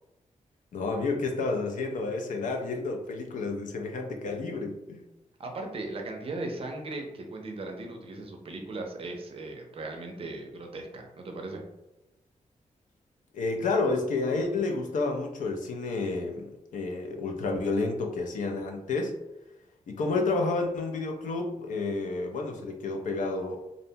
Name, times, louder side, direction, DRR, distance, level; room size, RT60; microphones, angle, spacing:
voice 1, 0.7-5.0 13.3-19.1 19.9-23.6, left 3 dB, 75° left, 3 dB, 0.4 m, -30 dB
voice 2, 5.4-11.6, right 2 dB, 45° right, 2 dB, 0.4 m, -38 dB
2.5 x 2.1 x 2.7 m, 0.96 s
wide cardioid pair, 155°, 13 cm